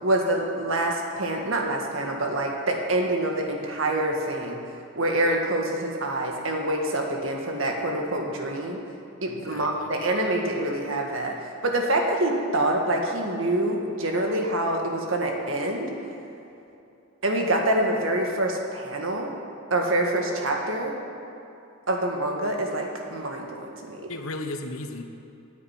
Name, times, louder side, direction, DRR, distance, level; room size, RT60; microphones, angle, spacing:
voice 1, 0.0-4.6 5.0-8.8 9.2-15.9 17.2-19.3 19.7-21.0 21.9-24.1, right 1 dB, 70° right, 1 dB, 1.8 m, -26 dB
voice 2, 9.3-9.9 24.1-25.0, left 2 dB, 85° left, 5 dB, 1.2 m, -35 dB
9.9 x 9.4 x 8.9 m, 2.7 s
head